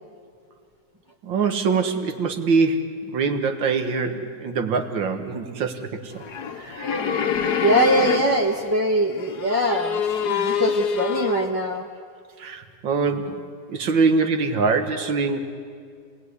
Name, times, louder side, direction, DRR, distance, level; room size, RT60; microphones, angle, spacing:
voice 1, 1.2-6.2 6.6-6.9 10.4-10.6 12.4-15.4, right 4 dB, 85° right, 7 dB, 2.3 m, -24 dB
sound 1, 6.2-8.7 9.2-11.5, left 7 dB, 60° left, 1.7 m, -26 dB
voice 2, 7.6-11.9, right 1 dB, 15° right, -2 dB, 1.3 m, -22 dB
30.0 x 19.0 x 9.7 m, 2.2 s
omnidirectional pair, 2.0 m